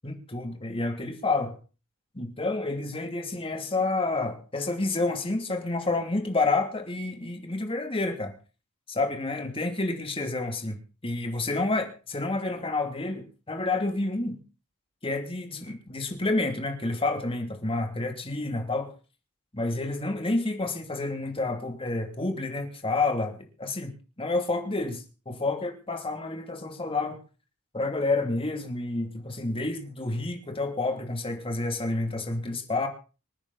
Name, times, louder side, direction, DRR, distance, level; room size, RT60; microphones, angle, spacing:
voice 1, 0.0-1.6 2.1-8.3 8.9-14.4 15.0-18.9 19.5-27.2 27.7-32.9, left 2 dB, 25° left, 4 dB, 2.8 m, -29 dB
26.0 x 9.7 x 4.1 m, 0.36 s
head